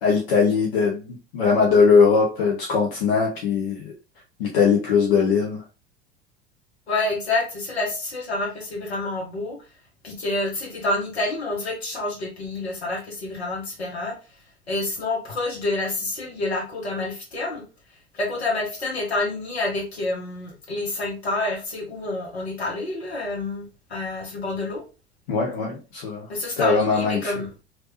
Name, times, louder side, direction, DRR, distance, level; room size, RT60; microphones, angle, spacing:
voice 1, 0.0-3.9 4.4-5.6 25.3-26.3 26.6-27.3, left 5 dB, 65° left, 0.9 m, -20 dB
voice 2, 6.9-9.6 10.0-14.1 14.7-17.6 18.1-24.8 26.3-27.5, left 2 dB, 80° left, 1.5 m, -28 dB
3.2 x 2.8 x 2.9 m
figure-of-eight pair, 80°, 31 cm